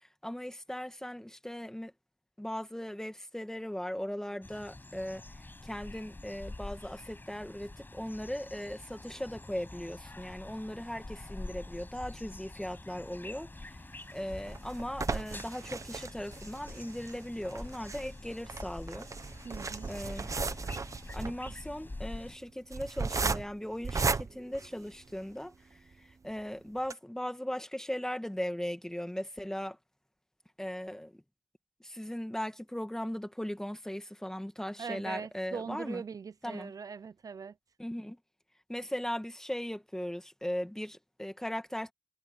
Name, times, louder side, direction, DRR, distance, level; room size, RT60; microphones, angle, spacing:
voice 1, 0.0-1.9 2.4-5.2 5.6-13.8 14.1-19.1 19.9-20.3 21.1-29.8 30.6-31.2 31.8-36.0 36.4-36.7 37.8-38.2 38.7-41.9, equal, 10° left, 1.9 m, -38 dB
sound 1, 4.4-22.4, left 2 dB, 35° left, 7.0 m, -46 dB
sound 2, 14.0-25.4 25.9-26.0 26.3-26.4 26.8-26.9, right 4 dB, 65° right, 0.9 m, -36 dB
voice 2, 19.4-19.9 34.8-37.5, right 5 dB, 85° right, 0.5 m, -41 dB
wide cardioid pair, 65°, 6 cm